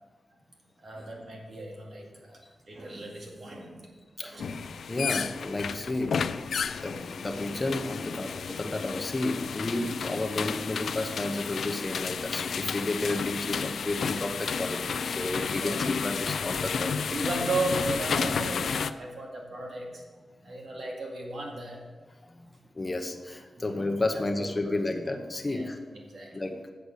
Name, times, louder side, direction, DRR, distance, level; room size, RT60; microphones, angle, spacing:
voice 1, 0.8-3.9 4.2-4.6 9.7-9.9 13.6-14.1 14.4-14.6 15.2-15.9 17.1-20.0 20.4-21.8 23.6-23.8 24.4-24.8 25.5-25.7 26.1-26.3, right 2 dB, 60° right, -1 dB, 2.2 m, -36 dB
sound 1, 4.4-18.9, left 6 dB, 75° left, 0.4 m, -32 dB
voice 2, 4.9-6.2 6.7-17.2 22.3-22.5 22.7-25.8 26.3-26.6, left 2 dB, 20° left, 5 dB, 1.0 m, -32 dB
8.0 x 7.0 x 6.6 m, 1.4 s
wide cardioid pair, 130°, 0 cm